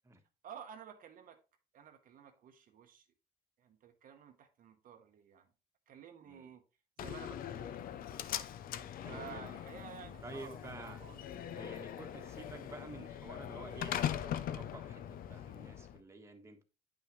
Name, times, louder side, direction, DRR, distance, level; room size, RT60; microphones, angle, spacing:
voice 1, 0.4-1.4 1.7-3.1 3.6-5.5 5.9-6.6 7.0-7.8 9.1-11.3, right 8 dB, 55° right, 0.9 m, -52 dB
Slam, 7.0-16.0, left 10 dB, 60° left, 0.5 m, -41 dB
voice 2, 9.0-9.6 10.2-11.0 11.5-16.6, right 2 dB, 15° right, 1.3 m, -50 dB
8.8 x 5.8 x 3.1 m
cardioid pair, 110°, 17 cm